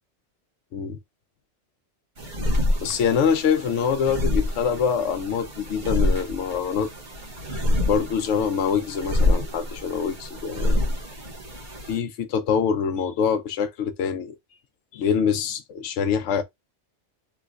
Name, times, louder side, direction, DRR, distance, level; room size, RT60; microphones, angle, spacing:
sound 1, 2.2-12.0, left 1 dB, 55° right, 1.2 m, -27 dB
voice 1, 2.8-6.9 7.5-10.8 11.9-14.4 14.9-16.4, left 7 dB, 85° left, 0.9 m, -25 dB
3.1 x 3.1 x 2.4 m
omnidirectional pair, 1.2 m